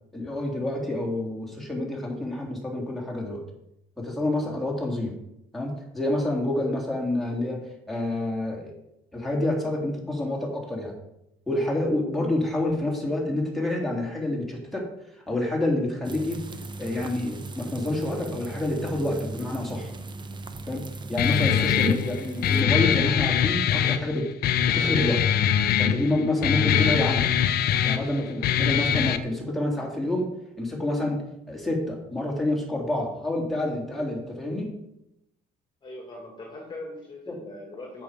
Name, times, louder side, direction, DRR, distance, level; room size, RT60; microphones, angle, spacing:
voice 1, 0.1-3.4 4.0-5.1 5.5-7.6 7.9-8.7 9.1-10.9 11.5-14.9 15.1-16.4 16.8-19.9 20.7-20.8 21.1-24.3 24.7-25.2 25.8-27.3 27.8-30.3 30.6-34.7 37.3-37.4, left 1 dB, ahead, -3 dB, 3.4 m, -28 dB
sound 1, 16.0-22.6, right 2 dB, 25° right, 0.9 m, -38 dB
Guitar, 21.2-29.2, left 9 dB, 65° left, 0.8 m, -23 dB
voice 2, 35.8-38.0, left 2 dB, 25° left, 0 dB, 2.3 m, -41 dB
8.5 x 7.5 x 5.3 m, 0.82 s
cardioid pair, 110°, 17 cm